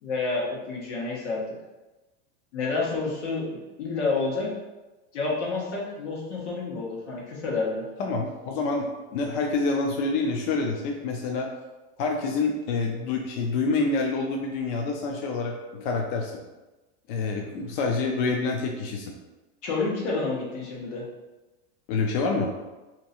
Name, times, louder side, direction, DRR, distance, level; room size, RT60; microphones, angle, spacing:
voice 1, 0.0-1.4 2.5-4.5 5.1-7.8 19.6-21.0, left 3 dB, 85° left, -4 dB, 1.4 m, -29 dB
voice 2, 8.0-11.5 12.0-16.4 17.1-19.2 21.9-22.5, left 3 dB, 45° left, 1 dB, 0.5 m, -27 dB
2.9 x 2.7 x 4.2 m, 1.1 s
supercardioid pair, 160°, 34 cm